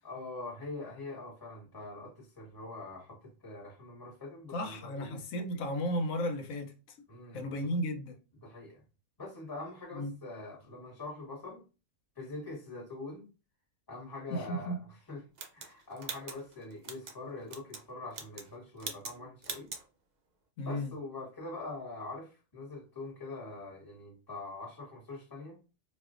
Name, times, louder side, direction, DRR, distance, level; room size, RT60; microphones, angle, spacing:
voice 1, 0.0-5.2 7.1-7.7 8.4-8.8 9.2-11.6 12.2-13.3 13.9-14.8 15.1-15.2 15.5-19.7 20.6-25.6, left 2 dB, 15° left, 1.1 m, -44 dB
voice 2, 4.5-7.0 7.3-8.2 9.9-10.1 14.3-14.8 20.6-20.9, equal, 85° left, 1.1 m, -34 dB
sound 1, 15.4-17.2 17.5-17.8 18.1-18.5 18.8-19.2 19.4-19.8, right 4 dB, 55° right, 0.5 m, -42 dB
4.3 x 2.3 x 2.4 m
omnidirectional pair, 1.4 m